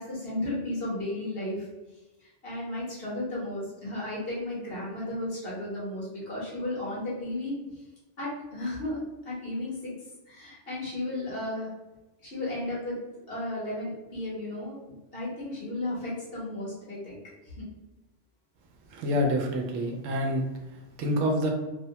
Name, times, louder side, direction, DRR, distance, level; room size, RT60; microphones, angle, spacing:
voice 1, 0.0-1.7 2.2-7.8 8.2-9.9 10.3-11.7 12.2-13.0 13.3-17.2 17.6-17.7, left 1 dB, 50° left, -6 dB, 1.2 m, -34 dB
voice 2, 18.9-20.4 21.0-21.5, equal, 85° right, 2 dB, 1.0 m, -27 dB
2.8 x 2.1 x 2.7 m, 1.1 s
omnidirectional pair, 1.3 m